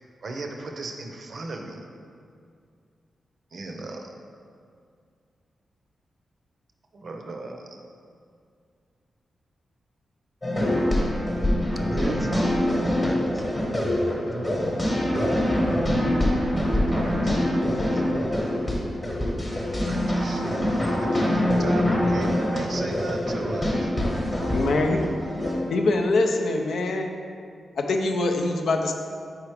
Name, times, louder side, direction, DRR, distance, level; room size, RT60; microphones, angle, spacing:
voice 1, 0.2-1.8 3.5-4.1 6.9-7.8 11.7-12.2 14.3-14.5 15.9-16.2 16.7-17.1 19.6-20.5 20.8-23.9, right 3 dB, 45° right, 2 dB, 0.6 m, -36 dB
sound 1, 10.4-25.5, left 1 dB, 20° left, 1.0 m, -24 dB
voice 2, 11.8-14.8 16.8-18.3, equal, ahead, 3 dB, 0.4 m, -38 dB
voice 3, 24.5-25.0 25.7-27.1 27.8-28.9, left 2 dB, 75° left, 3 dB, 0.5 m, -23 dB
4.9 x 4.4 x 4.8 m, 2.3 s
wide cardioid pair, 160°, 0 cm